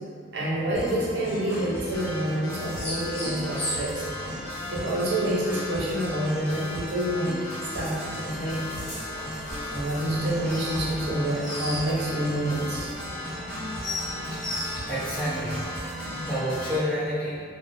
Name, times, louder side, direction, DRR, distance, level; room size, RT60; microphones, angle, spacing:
voice 1, 0.3-4.1 4.7-7.4 7.7-8.7 9.7-12.9, right 1 dB, 60° right, -6 dB, 0.5 m, -28 dB
sound 1, 0.7-16.7, equal, 10° right, 1.1 m, -37 dB
sound 2, 1.9-16.8, left 3 dB, 65° left, 0.4 m, -38 dB
sound 3, 2.6-15.7, left 1 dB, 85° left, 1.1 m, -38 dB
voice 2, 14.9-15.6 16.2-17.4, equal, 5° left, -13 dB, 0.7 m, -28 dB
2.4 x 2.1 x 2.5 m, 2.2 s
head